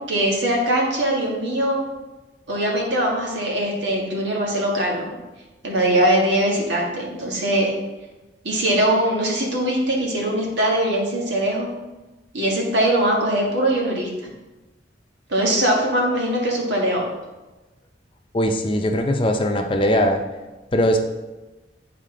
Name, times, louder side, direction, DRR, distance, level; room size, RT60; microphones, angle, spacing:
voice 1, 0.1-1.8 2.5-5.0 5.6-7.7 8.4-11.7 12.3-14.3 15.3-17.1, right 1 dB, 90° right, -2 dB, 1.7 m, -21 dB
voice 2, 18.3-20.2 20.7-21.0, equal, 30° left, 4 dB, 0.6 m, -20 dB
9.1 x 4.2 x 3.8 m, 1.1 s
head